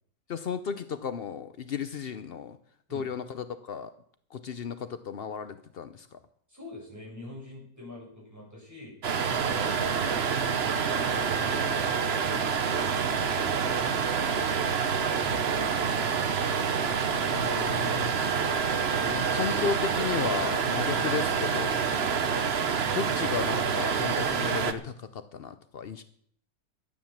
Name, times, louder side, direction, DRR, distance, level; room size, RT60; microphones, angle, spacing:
voice 1, 0.3-2.6 2.9-3.9 4.3-6.2 17.3-18.3 19.1-21.8 22.9-26.0, left 6 dB, 85° left, 11 dB, 0.5 m, -34 dB
voice 2, 6.5-8.9 9.3-10.2 10.8-12.0 12.2-13.0 13.5-14.0, left 2 dB, 10° right, -4 dB, 7.2 m, -47 dB
sound 1, 9.0-24.7, right 6 dB, 45° right, 0.9 m, -27 dB
sound 2, 10.5-17.4, left 3 dB, 55° left, 5.1 m, -50 dB
12.5 x 9.5 x 7.3 m, 0.63 s
omnidirectional pair, 2.0 m